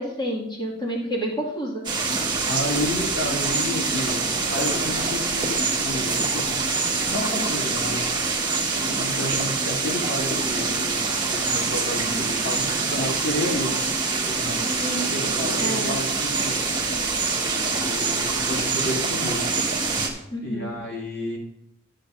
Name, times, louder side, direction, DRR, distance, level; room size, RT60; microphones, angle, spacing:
voice 1, 0.0-1.8 14.8-16.0 20.3-20.8, equal, 25° left, -3 dB, 2.2 m, -29 dB
sound 1, 1.8-20.1, right 4 dB, 25° right, 1.5 m, -25 dB
voice 2, 2.5-8.1 8.8-13.9 14.3-14.6 15.1-16.6 17.8-19.5 20.4-21.4, left 1 dB, 55° left, -4 dB, 2.9 m, -31 dB
13.0 x 7.6 x 2.6 m, 0.82 s
head